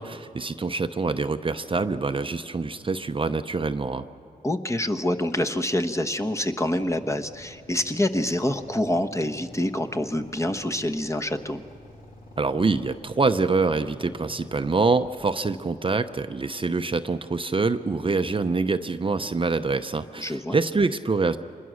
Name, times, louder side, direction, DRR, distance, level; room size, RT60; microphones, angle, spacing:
voice 1, 0.0-4.0 12.4-21.4, right 3 dB, 35° right, 9 dB, 0.7 m, -25 dB
voice 2, 4.4-11.6 20.2-20.6, left 1 dB, 20° left, 5 dB, 1.1 m, -26 dB
Motorcycle / Idling, 6.7-16.7, left 2 dB, 60° left, 3.0 m, -49 dB
26.0 x 21.0 x 6.4 m, 2.6 s
cardioid pair, 65°, 16 cm